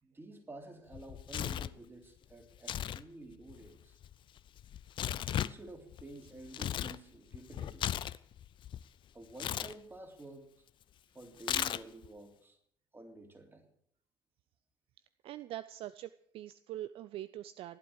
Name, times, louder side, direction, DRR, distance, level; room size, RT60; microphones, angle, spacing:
voice 1, 0.0-4.0 5.3-7.9 9.1-10.5 11.1-12.6 12.9-13.7, right 2 dB, 20° right, 4 dB, 3.4 m, -50 dB
Tearing, 0.9-1.8 2.6-3.0 3.3-7.0 7.3-8.8 9.4-9.7 11.4-12.1, left 11 dB, 45° left, 0.6 m, -36 dB
voice 2, 15.2-17.8, right 13 dB, 50° right, 15 dB, 0.5 m, -43 dB
15.5 x 11.5 x 6.6 m, 0.68 s
figure-of-eight pair, 55°, 12 cm